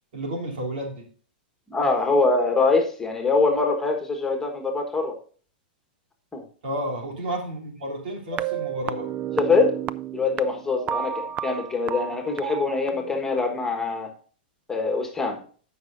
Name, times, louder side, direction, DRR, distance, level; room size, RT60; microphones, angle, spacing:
voice 1, 0.1-1.1 6.6-9.1, equal, 75° right, 0 dB, 3.3 m, -31 dB
voice 2, 1.7-5.1 6.3-6.4 9.4-9.8 10.1-14.1 14.7-15.4, left 3 dB, 10° left, 3 dB, 1.5 m, -23 dB
sound 1, 8.3-13.4, right 10 dB, 30° right, 0.3 m, -32 dB
15.0 x 5.8 x 2.6 m, 0.42 s
hypercardioid pair, 135°, 5 cm